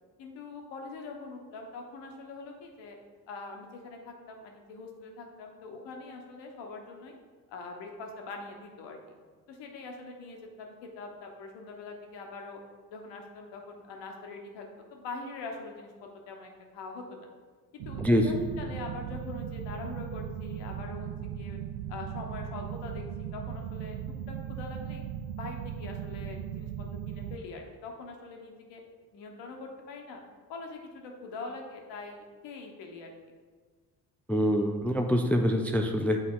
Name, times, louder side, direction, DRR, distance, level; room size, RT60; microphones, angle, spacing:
voice 1, 0.2-3.0 3.3-7.2 7.5-9.2 9.5-12.6 12.9-15.9 16.3-17.3 17.7-21.1 21.3-21.6 21.9-24.0 24.3-25.0 25.3-28.8 29.1-30.2 30.5-33.1, left 3 dB, 60° left, 2 dB, 1.2 m, -43 dB
sound 1, 17.8-27.4, right 9 dB, 60° right, 0.5 m, -38 dB
voice 2, 34.3-36.2, equal, 5° left, 4 dB, 0.4 m, -25 dB
8.1 x 4.0 x 3.8 m, 1.5 s
figure-of-eight pair, 45°, 49 cm